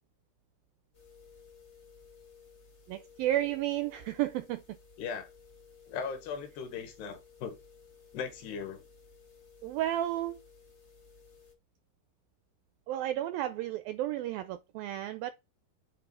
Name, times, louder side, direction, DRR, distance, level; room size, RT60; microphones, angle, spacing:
sound 1, 0.9-11.5, left 5 dB, 65° left, 0.6 m, -57 dB
voice 1, 2.9-4.6 9.6-10.4 12.9-15.3, right 13 dB, 85° right, 2.0 m, -32 dB
voice 2, 5.0-5.3 5.9-7.6 8.1-8.9, left 6 dB, 80° left, 3.5 m, -38 dB
9.2 x 3.1 x 5.4 m
omnidirectional pair, 4.6 m